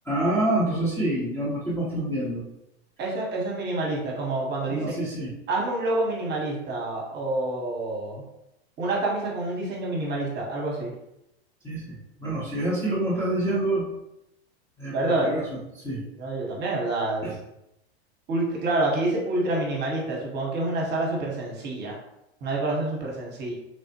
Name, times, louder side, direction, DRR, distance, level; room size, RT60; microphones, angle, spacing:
voice 1, 0.1-2.4 4.7-5.3 11.6-13.9 14.8-14.9 15.2-15.4 15.7-16.0 17.2-17.3, right 1 dB, 10° left, -8 dB, 0.7 m, -27 dB
voice 2, 3.0-5.0 5.5-8.2 8.8-10.9 14.9-15.5 16.2-17.3 18.3-22.0 22.4-23.5, right 2 dB, 30° right, -2 dB, 0.9 m, -27 dB
3.2 x 2.1 x 2.8 m, 0.86 s
hypercardioid pair, 115°, 33 cm